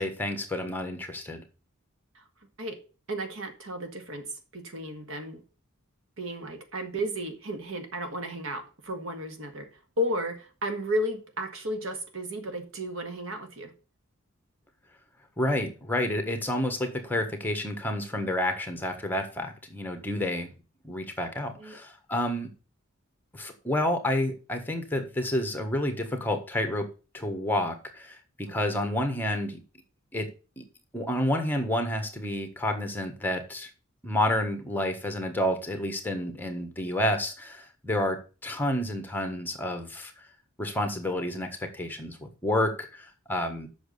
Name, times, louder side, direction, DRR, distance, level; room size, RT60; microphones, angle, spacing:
voice 1, 0.0-1.4 15.4-20.5 20.8-22.5 23.3-26.9 27.1-29.6 30.1-30.3 30.6-30.7 30.9-33.7 34.0-40.1 40.6-43.7, left 1 dB, 10° left, 1.5 m, -29 dB
voice 2, 3.1-5.4 6.2-9.7 10.0-13.7 21.6-21.8 28.5-28.6, equal, 80° right, 1.9 m, -33 dB
7.7 x 6.3 x 6.8 m
head